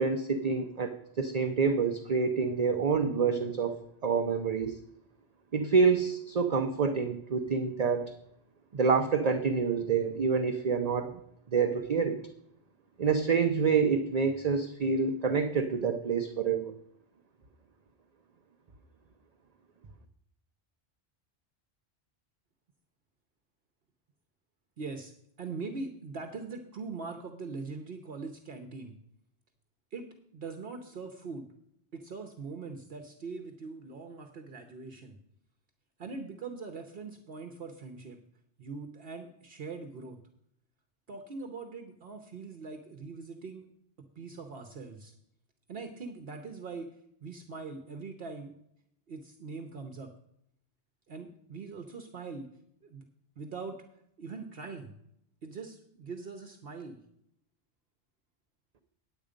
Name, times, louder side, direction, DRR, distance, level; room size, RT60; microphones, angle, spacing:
voice 1, 0.0-4.8 5.5-8.1 8.7-11.1 11.5-12.2 13.0-16.7, right 5 dB, 40° right, 6 dB, 0.7 m, -27 dB
voice 2, 24.8-25.1 25.4-28.9 29.9-31.5 31.9-35.2 36.0-38.2 38.6-40.2 41.1-43.6 44.2-45.1 45.7-46.9 47.2-48.5 49.1-50.1 51.1-52.5 52.8-53.1 53.4-53.8 54.2-54.9 55.4-57.0, right 4 dB, 60° right, 5 dB, 1.1 m, -42 dB
9.8 x 8.2 x 5.1 m, 0.74 s
omnidirectional pair, 1.1 m